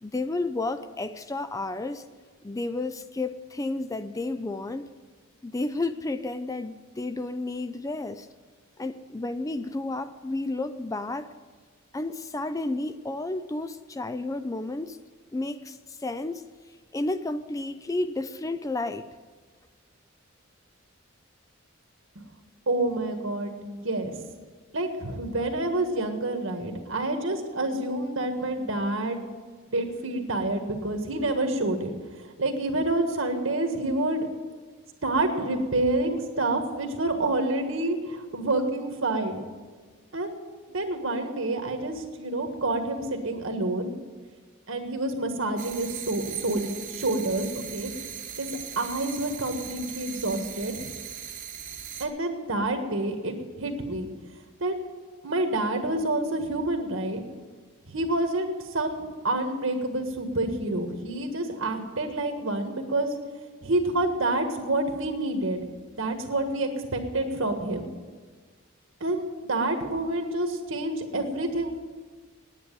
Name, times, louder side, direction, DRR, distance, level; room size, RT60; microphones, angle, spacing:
voice 1, 0.0-2.0 2.4-4.9 5.4-8.3 8.8-11.3 11.9-15.0 15.3-16.4 16.9-19.1, left 2 dB, 15° left, 0.4 m, -31 dB
voice 2, 22.7-24.2 24.7-29.2 29.7-31.9 32.4-34.3 35.0-39.5 40.1-40.4 40.7-43.9 44.7-47.9 48.4-48.5 48.7-50.7 52.0-54.1 54.6-54.7 55.2-57.2 57.9-63.1 63.6-65.6 65.9-67.9 69.0-71.7, right 2 dB, 70° right, 1.6 m, -28 dB
sound 1, 45.6-52.1, right 8 dB, 40° right, 1.1 m, -39 dB
9.7 x 9.4 x 9.3 m
head